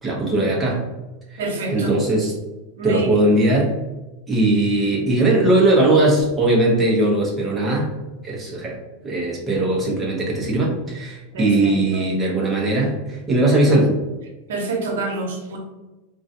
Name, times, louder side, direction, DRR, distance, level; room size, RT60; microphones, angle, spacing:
voice 1, 0.0-0.8 1.3-1.4 1.7-2.3 2.8-3.7 4.3-7.9 8.2-8.8 9.0-13.9, right 2 dB, 10° right, -4 dB, 0.8 m, -19 dB
voice 2, 1.4-1.9 2.8-3.2 11.3-12.0 14.5-15.6, right 2 dB, 80° right, 1 dB, 0.9 m, -27 dB
3.7 x 2.3 x 2.6 m, 1.1 s
supercardioid pair, 155°, 0 cm